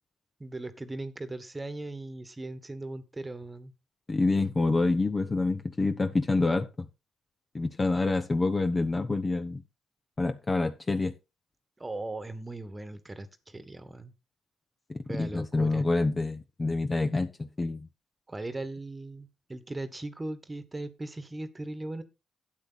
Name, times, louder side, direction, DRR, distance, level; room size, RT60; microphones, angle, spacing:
voice 1, 0.4-3.7 11.8-14.1 15.1-15.8 18.3-22.0, right 2 dB, 15° right, 1.6 m, -38 dB
voice 2, 4.1-6.7 7.5-9.6 10.2-11.1 14.9-17.9, left 3 dB, 25° left, 1.0 m, -27 dB
12.0 x 8.6 x 4.2 m
cardioid pair, 100°, 0 cm